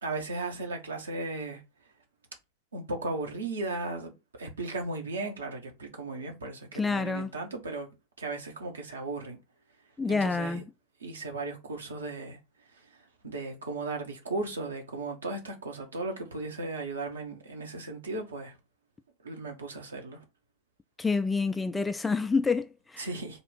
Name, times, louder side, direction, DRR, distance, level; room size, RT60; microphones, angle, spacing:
voice 1, 0.0-1.6 2.7-7.9 8.2-9.4 10.1-10.6 11.0-12.4 13.2-18.5 19.2-20.2 23.0-23.4, right 2 dB, 70° right, 1.1 m, -36 dB
voice 2, 6.7-7.3 10.0-10.7 21.0-23.1, left 4 dB, 10° left, 0.3 m, -28 dB
3.6 x 2.5 x 3.9 m
figure-of-eight pair, 90°, 0 cm